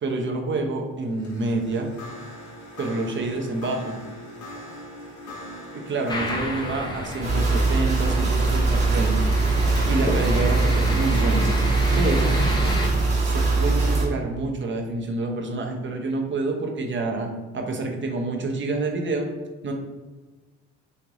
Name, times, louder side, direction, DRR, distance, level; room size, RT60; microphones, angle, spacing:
voice 1, 0.0-1.9 2.8-4.0 5.7-9.3 9.9-11.5 12.0-12.4 13.2-19.3 19.6-19.7, right 2 dB, 40° right, 2 dB, 0.8 m, -27 dB
sound 1, 1.1-10.4, equal, 70° left, 1.1 m, -42 dB
sound 2, 6.1-12.9, left 1 dB, 15° left, 0.7 m, -29 dB
sound 3, 7.2-14.0, right 3 dB, 25° right, 1.3 m, -22 dB
3.3 x 3.0 x 3.7 m, 1.2 s
cardioid pair, 90°, 30 cm